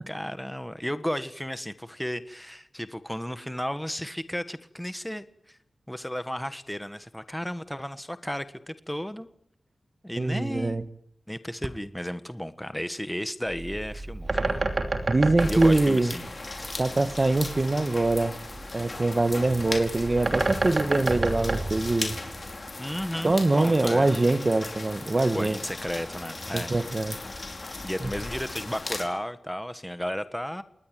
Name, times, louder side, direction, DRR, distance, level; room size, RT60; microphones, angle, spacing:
voice 1, 0.1-5.6 5.9-9.3 10.0-10.8 11.3-14.6 15.5-16.3 16.6-17.1 22.8-24.1 25.3-26.7 27.8-30.6, equal, 5° left, 1.4 m, -33 dB
voice 2, 10.2-10.8 15.1-16.1 16.8-18.4 18.7-22.2 23.2-25.6 26.5-27.2 28.0-28.1, right 2 dB, 30° right, 1.7 m, -23 dB
Bird, 13.4-22.6, right 2 dB, 50° right, 2.9 m, -30 dB
sound 1, 15.4-29.0, left 2 dB, 35° left, 4.8 m, -37 dB
28.5 x 19.5 x 9.2 m
wide cardioid pair, 110°, 0 cm